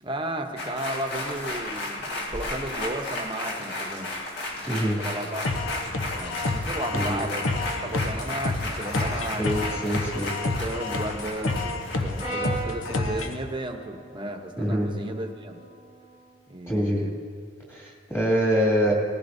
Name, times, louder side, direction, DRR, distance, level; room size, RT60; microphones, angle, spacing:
voice 1, 0.0-4.2 4.5-4.7 5.0-5.5 6.1-9.8 10.5-15.6 16.5-17.2, right 1 dB, 25° right, 4 dB, 0.9 m, -34 dB
sound 1, 0.6-13.3 13.6-13.7, left 2 dB, 55° left, 1.7 m, -34 dB
voice 2, 4.7-5.0 6.9-7.2 9.4-10.3 14.6-14.9 16.7-17.0 17.7-18.9, equal, 15° left, -3 dB, 2.3 m, -25 dB
sound 2, 5.4-13.4, left 2 dB, 90° left, 0.8 m, -29 dB
Brass instrument, 12.2-16.4, right 2 dB, 35° left, 2.8 m, -39 dB
19.0 x 15.0 x 2.7 m, 2.1 s
head